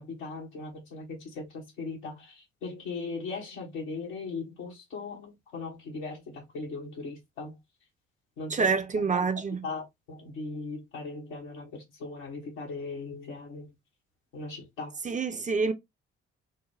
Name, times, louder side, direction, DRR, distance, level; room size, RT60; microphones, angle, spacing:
voice 1, 0.0-7.6 8.4-9.3 9.6-13.7 14.3-15.0, left 3 dB, 80° left, 1.4 m, -39 dB
voice 2, 8.5-9.6 15.0-15.7, right 5 dB, 25° right, 0.7 m, -27 dB
4.1 x 2.1 x 3.0 m
figure-of-eight pair, 45°, 32 cm